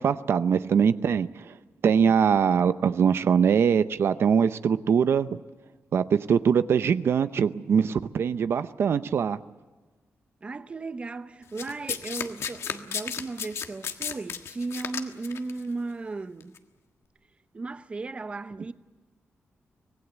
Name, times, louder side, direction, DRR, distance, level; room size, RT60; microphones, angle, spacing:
voice 1, 0.0-1.5 1.8-5.4 5.9-9.4, right 7 dB, 60° right, 0.7 m, -22 dB
voice 2, 10.4-16.6 17.5-18.7, right 3 dB, 25° right, 0.7 m, -36 dB
Domestic sounds home sounds, 11.6-15.5 16.4-16.6, left 7 dB, 70° left, 1.5 m, -33 dB
25.0 x 19.0 x 8.1 m
wide cardioid pair, 175°, 5 cm